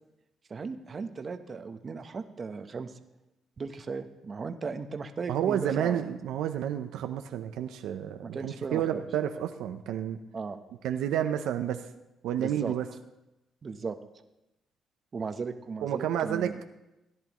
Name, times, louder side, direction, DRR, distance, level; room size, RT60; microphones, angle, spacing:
voice 1, 0.5-2.9 3.6-6.0 8.2-9.1 10.3-10.6 12.3-12.7 13.6-14.0 15.1-16.6, right 4 dB, 40° right, 8 dB, 0.9 m, -36 dB
voice 2, 5.3-10.2 10.8-11.8 12.2-12.8 15.8-16.6, right 10 dB, 90° right, 7 dB, 0.6 m, -30 dB
17.0 x 10.5 x 3.1 m, 0.95 s
cardioid pair, 90°, 0 cm